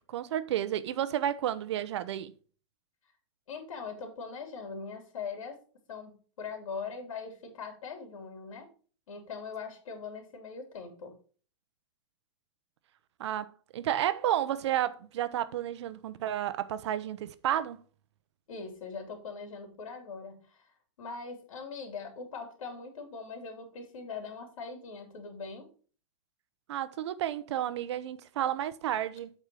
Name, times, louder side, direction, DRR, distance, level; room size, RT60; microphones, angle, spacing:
voice 1, 0.0-2.3 13.2-17.8 26.7-29.3, right 11 dB, 55° right, 0.8 m, -31 dB
voice 2, 3.5-5.6 5.9-8.7 9.1-11.1 18.5-25.7, left 5 dB, 80° left, 3.2 m, -41 dB
8.2 x 4.5 x 6.2 m
supercardioid pair, 175°, 17 cm